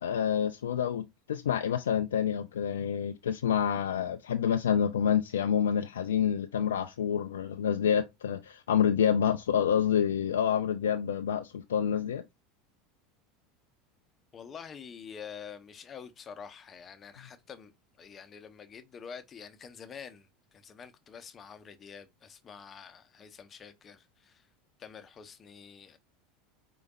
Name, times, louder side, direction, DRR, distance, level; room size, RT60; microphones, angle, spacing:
voice 1, 0.0-12.2, left 8 dB, 80° left, 0.4 m, -28 dB
voice 2, 14.3-17.7 18.0-24.4 24.8-26.0, left 7 dB, 35° left, 0.8 m, -47 dB
5.0 x 3.8 x 2.4 m
hypercardioid pair, 85°, 0 cm